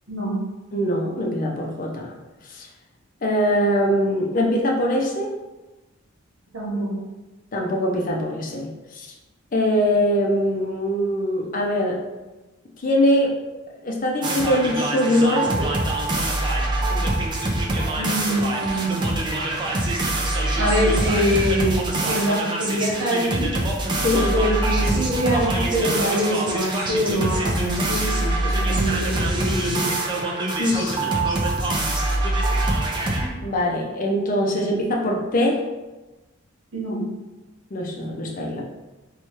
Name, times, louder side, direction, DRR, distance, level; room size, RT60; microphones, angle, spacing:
voice 1, 0.7-2.1 2.5-2.7 3.2-5.3 7.5-9.1 9.5-12.0 12.8-13.3 13.8-15.7 24.0-24.2 30.6-31.4 33.4-35.6 37.7-38.6, left 1 dB, 40° left, -1 dB, 0.5 m, -22 dB
voice 2, 6.5-7.0 17.9-19.1 20.6-23.5 24.1-29.9 36.7-37.0, equal, 80° right, -4 dB, 1.2 m, -24 dB
sound 1, 14.2-33.3, right 2 dB, 25° right, 0.5 m, -24 dB
3.1 x 2.3 x 4.2 m, 1.1 s
head